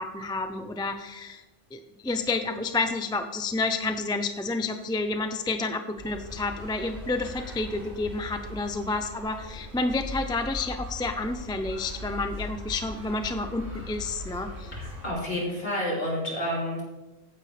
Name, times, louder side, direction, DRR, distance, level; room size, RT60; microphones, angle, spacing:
voice 1, 0.0-1.4 1.7-14.7, left 3 dB, 5° left, 7 dB, 0.4 m, -30 dB
sound 1, 5.9-15.1, left 1 dB, 45° right, 2.6 m, -40 dB
voice 2, 14.8-16.8, equal, 55° left, -4 dB, 3.9 m, -30 dB
15.0 x 9.7 x 3.4 m, 1.1 s
omnidirectional pair, 1.2 m